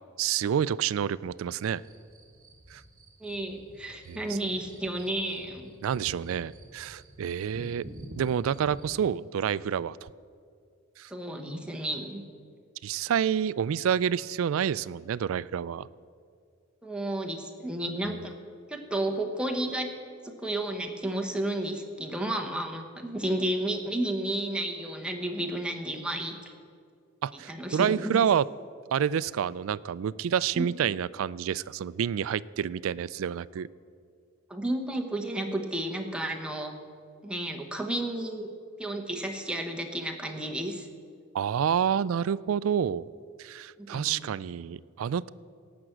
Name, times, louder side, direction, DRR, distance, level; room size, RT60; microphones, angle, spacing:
voice 1, 0.2-1.8 2.7-2.8 4.1-4.4 5.8-7.8 8.2-10.1 11.0-11.1 12.8-15.9 27.2-28.5 28.9-33.7 41.3-43.1 43.4-45.3, right 8 dB, 80° right, 19 dB, 0.3 m, -28 dB
sound 1, 1.6-9.1, right 1 dB, 45° right, 1.7 m, -49 dB
voice 2, 3.2-5.7 11.1-12.2 16.8-18.3 18.7-19.9 20.2-26.4 27.5-28.2 30.5-30.7 34.5-36.7 37.2-38.5 38.8-40.9 43.9-44.3, right 1 dB, 5° right, 2 dB, 1.1 m, -32 dB
17.5 x 6.0 x 7.9 m, 2.2 s
head